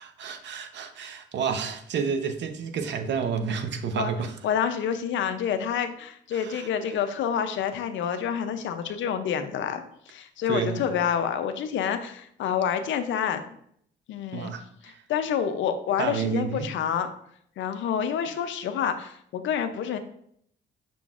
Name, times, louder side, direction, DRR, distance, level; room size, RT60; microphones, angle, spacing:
voice 1, 0.0-4.4 6.3-6.7 10.5-10.9 14.3-15.0 16.0-16.7, right 6 dB, 65° right, 0.7 m, -30 dB
voice 2, 4.4-13.5 14.1-14.5 14.8-17.1 17.6-20.0, left 8 dB, 70° left, 0.5 m, -28 dB
5.7 x 3.8 x 2.4 m
cardioid pair, 90°, 20 cm